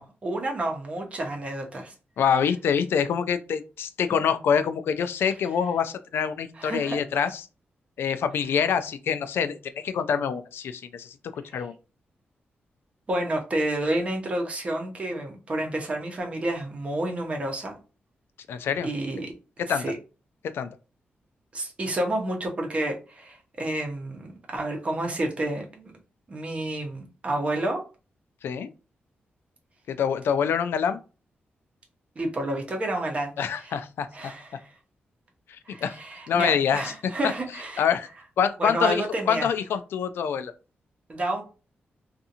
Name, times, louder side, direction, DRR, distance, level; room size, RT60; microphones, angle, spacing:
voice 1, 0.0-1.9 6.6-7.0 11.5-11.6 13.1-17.8 18.8-19.3 19.7-20.0 21.5-25.9 26.3-27.8 32.2-33.3 33.6-33.8 34.1-34.7 35.7-37.9 38.6-39.5 41.1-41.4, right 1 dB, 35° right, 2 dB, 0.7 m, -30 dB
voice 2, 2.2-7.4 8.0-11.1 11.5-11.7 18.5-18.9 19.6-19.8 20.4-20.7 28.4-28.7 29.9-31.0 33.4-34.1 35.5-36.0 36.3-36.9 37.2-37.3 37.8-38.1 38.4-39.0 39.3-40.5, left 7 dB, 80° left, 10 dB, 0.3 m, -25 dB
2.6 x 2.4 x 2.7 m, 0.33 s
wide cardioid pair, 145°, 4 cm